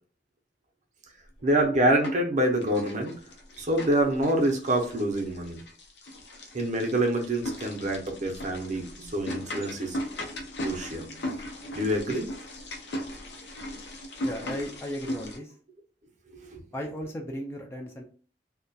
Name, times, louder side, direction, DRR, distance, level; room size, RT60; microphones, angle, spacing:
sound 1, 1.4-2.3 2.6-15.4, left 1 dB, 65° left, 0.5 m, -38 dB
voice 1, 1.4-3.2 3.6-5.6 6.5-10.0 10.6-11.1 11.7-12.3 16.3-16.6, right 1 dB, 40° right, 2 dB, 0.5 m, -26 dB
voice 2, 14.2-15.5 16.7-18.0, equal, 15° left, 0 dB, 0.3 m, -35 dB
2.2 x 2.1 x 2.6 m, 0.43 s
head